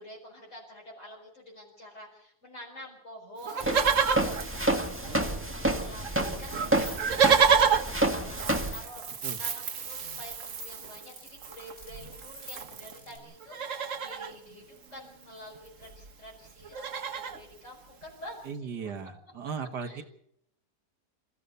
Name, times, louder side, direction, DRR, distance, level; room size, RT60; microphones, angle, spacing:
voice 1, 0.0-16.8 17.1-18.9 19.8-20.0, equal, 45° left, -5 dB, 6.0 m, -48 dB
Livestock farm animals working animals, 3.4-5.4 5.7-5.8 6.0-13.0 13.4-14.3 15.5-15.6 15.8-16.1 16.4-17.4 18.0-18.1, right 7 dB, 55° right, 1.5 m, -29 dB
Walk footsteps, 3.6-8.8, right 1 dB, 10° right, 1.8 m, -29 dB
sound 1, 5.7-13.2, left 2 dB, 70° left, 4.2 m, -50 dB
voice 2, 18.5-20.0, right 6 dB, 90° right, 7 dB, 2.1 m, -37 dB
27.5 x 15.5 x 6.7 m, 0.73 s
omnidirectional pair, 1.7 m